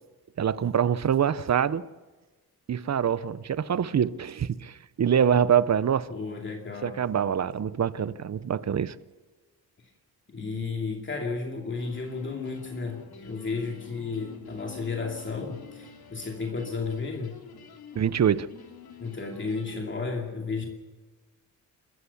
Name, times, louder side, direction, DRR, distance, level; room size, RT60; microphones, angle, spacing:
voice 1, 0.4-1.9 2.7-6.1 6.8-9.0 17.9-18.5, right 8 dB, 45° right, 0.7 m, -25 dB
voice 2, 6.1-7.0 10.3-17.4 19.0-20.7, left 4 dB, 30° left, 2.6 m, -33 dB
sound 1, 11.8-19.8, left 7 dB, 80° left, 3.1 m, -46 dB
29.0 x 14.0 x 7.1 m
wide cardioid pair, 135°, 37 cm